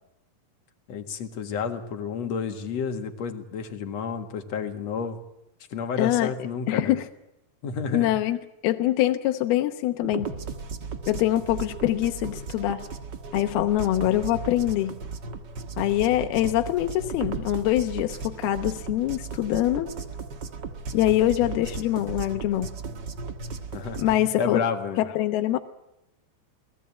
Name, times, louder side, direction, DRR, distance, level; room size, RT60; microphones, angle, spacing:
voice 1, 0.9-5.2 5.7-6.9 7.6-8.1 23.7-25.0, left 6 dB, 50° left, 6 dB, 2.4 m, -30 dB
voice 2, 6.0-6.3 6.7-7.1 7.9-8.4 8.6-10.3 11.1-12.8 13.3-14.9 15.8-19.9 20.9-22.7 24.0-24.6 25.0-25.6, left 14 dB, 75° left, 6 dB, 2.9 m, -24 dB
sound 1, 10.0-24.2, right 4 dB, 85° right, 0.9 m, -36 dB
28.5 x 19.5 x 8.6 m, 0.85 s
omnidirectional pair, 4.6 m